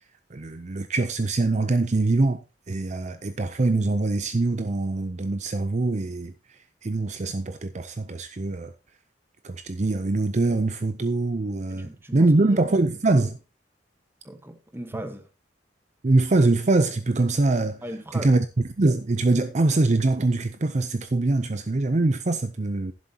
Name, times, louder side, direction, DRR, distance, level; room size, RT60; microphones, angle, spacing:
voice 1, 0.3-6.3 6.8-8.7 9.4-13.4 16.0-17.8 18.1-22.9, right 2 dB, 40° right, 0.6 m, -23 dB
voice 2, 11.7-12.6 14.2-15.3 17.8-18.4, equal, 15° right, 1.2 m, -38 dB
11.5 x 11.0 x 2.8 m
head